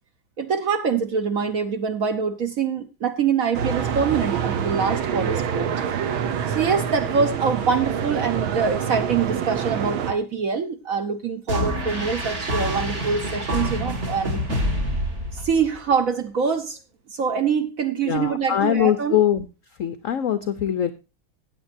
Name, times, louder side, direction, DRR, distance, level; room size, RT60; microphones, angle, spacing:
voice 1, 0.4-5.7 6.5-14.4 15.3-16.8 17.1-19.2, right 6 dB, 55° right, 9 dB, 1.1 m, -24 dB
sound 1, 3.5-10.1, right 8 dB, 85° right, 1.9 m, -26 dB
sound 2, 11.5-15.8, equal, 35° right, 2.0 m, -26 dB
voice 2, 18.1-19.5 19.8-20.9, left 10 dB, 70° left, 12 dB, 0.7 m, -22 dB
15.5 x 8.7 x 2.6 m, 0.29 s
omnidirectional pair, 2.2 m